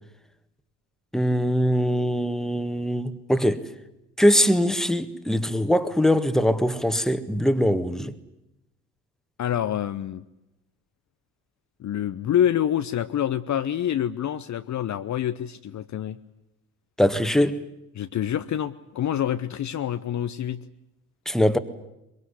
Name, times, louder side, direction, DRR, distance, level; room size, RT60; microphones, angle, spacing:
voice 1, 1.1-3.7 4.2-8.1 17.0-17.6 21.3-21.6, equal, ahead, 1.7 m, -22 dB
voice 2, 9.4-10.2 11.8-16.2 17.9-20.6, left 10 dB, 40° left, 0.9 m, -27 dB
23.0 x 22.0 x 9.8 m
hypercardioid pair, 55°, 44 cm